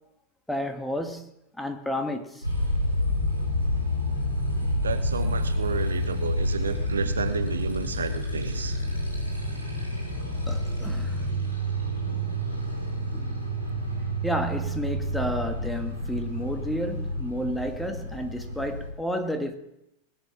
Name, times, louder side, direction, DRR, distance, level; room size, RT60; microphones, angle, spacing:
voice 1, 0.5-1.3 1.6-2.4 10.5-11.3 12.1-12.4 13.1-13.3 14.2-19.5, equal, 5° left, 1.7 m, -31 dB
Motorcycle, 2.4-18.9, equal, 85° left, 4.1 m, -29 dB
voice 2, 4.8-8.8, right 5 dB, 70° right, 0.9 m, -31 dB
20.0 x 7.0 x 5.9 m
figure-of-eight pair, 90°, 0 cm